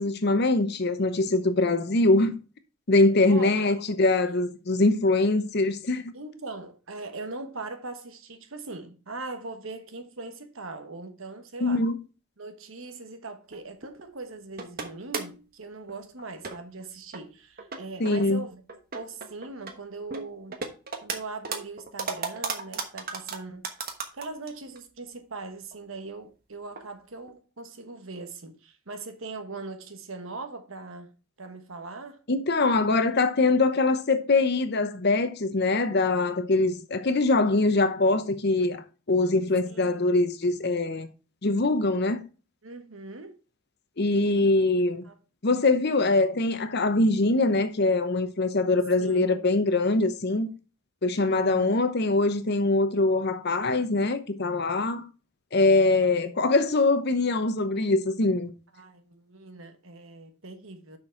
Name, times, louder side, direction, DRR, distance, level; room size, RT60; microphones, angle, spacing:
voice 1, 0.0-2.3 2.9-6.1 11.6-12.0 18.0-18.4 32.3-41.1 41.4-42.2 44.0-45.0 45.4-50.5 51.0-55.0 55.5-58.5, left 2 dB, 50° left, 0.8 m, -23 dB
voice 2, 3.3-3.7 6.1-11.8 12.4-18.6 18.9-20.6 21.0-23.6 24.1-32.2 37.5-37.7 39.6-39.9 42.6-43.4 45.0-45.1 49.0-49.2 51.3-51.8 56.2-56.4 58.7-61.0, right 3 dB, 65° right, 1.2 m, -40 dB
sound 1, 13.5-14.0 14.6-15.4 15.9-16.0 16.4-16.8 17.1-17.2 17.6-18.2 18.7-19.8 20.1-21.2 21.4-24.5 24.8-24.9 25.3-25.4 25.7-25.8 26.7-26.9 27.3-27.4, right 4 dB, 45° right, 1.2 m, -35 dB
6.2 x 6.1 x 4.4 m
head